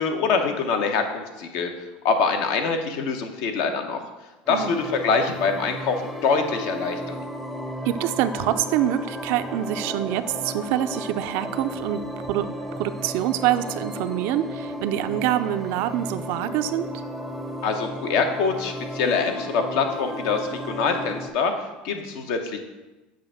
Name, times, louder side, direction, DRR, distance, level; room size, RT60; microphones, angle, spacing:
voice 1, 0.0-1.7 2.0-4.0 4.5-7.2 17.6-21.5 21.8-22.6, left 5 dB, 70° left, 5 dB, 0.9 m, -24 dB
sound 1, 4.5-21.3, equal, ahead, 0.6 m, -34 dB
voice 2, 7.8-12.0 12.3-12.5 12.8-16.9, right 12 dB, 65° right, 12 dB, 0.4 m, -25 dB
7.5 x 2.5 x 5.6 m, 1.1 s
supercardioid pair, 95°, 5 cm